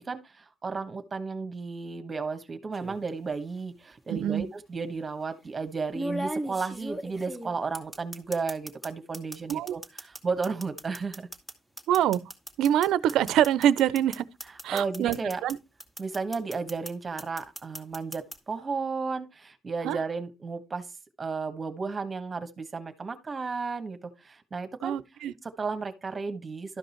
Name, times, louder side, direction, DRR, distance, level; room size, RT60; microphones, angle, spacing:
voice 1, 0.0-11.3 14.7-15.4 16.0-20.9 21.2-25.0 25.4-26.8, right 4 dB, 30° right, 1.6 m, -33 dB
sound 1, 2.7-3.1 4.3-4.4 5.9-8.9 9.1-15.5 15.8-16.9 17.2-18.4, right 1 dB, 5° left, 2.2 m, -37 dB
voice 2, 4.1-4.4 9.5-9.7 11.9-12.2 12.6-14.3 14.6-15.2 15.4-15.6 19.8-20.0 24.8-25.3, right 11 dB, 85° right, 0.6 m, -24 dB
12.5 x 5.3 x 4.4 m
cardioid pair, 90°, 0 cm